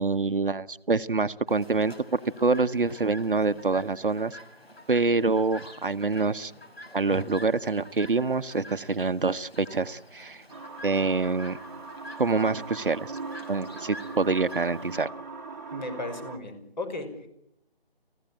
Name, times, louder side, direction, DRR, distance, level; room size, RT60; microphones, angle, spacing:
voice 1, 0.0-4.4 4.9-6.5 6.9-10.4 10.8-11.6 12.2-13.1 13.5-15.1, right 3 dB, 55° right, 12 dB, 1.0 m, -26 dB
Chirp tweet, 1.5-15.0, left 1 dB, 75° left, 5.3 m, -47 dB
sound 1, 10.5-16.4, right 4 dB, 15° right, 1.5 m, -40 dB
voice 2, 15.7-17.3, left 2 dB, 45° left, 7 dB, 6.0 m, -36 dB
30.0 x 16.0 x 8.8 m, 0.78 s
figure-of-eight pair, 160°, 31 cm